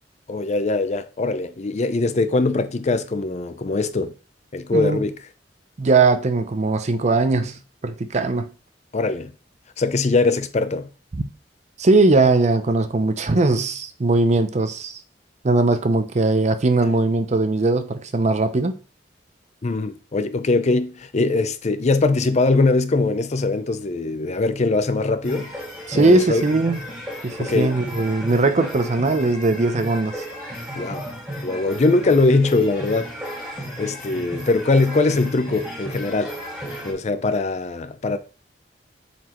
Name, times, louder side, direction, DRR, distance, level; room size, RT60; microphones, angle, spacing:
voice 1, 0.3-4.1 4.5-5.2 8.9-9.3 9.8-10.9 19.6-25.5 25.9-26.4 27.4-27.7 30.8-31.1 31.4-33.1 33.5-36.3 36.8-38.2, left 3 dB, 40° left, 0.5 m, -21 dB
voice 2, 5.8-8.5 11.1-11.2 11.8-15.0 15.4-18.8 25.9-26.8 27.2-30.2, right 3 dB, 40° right, 0.5 m, -19 dB
sound 1, 25.2-36.9, equal, 5° right, 2.7 m, -34 dB
7.4 x 4.3 x 3.0 m
head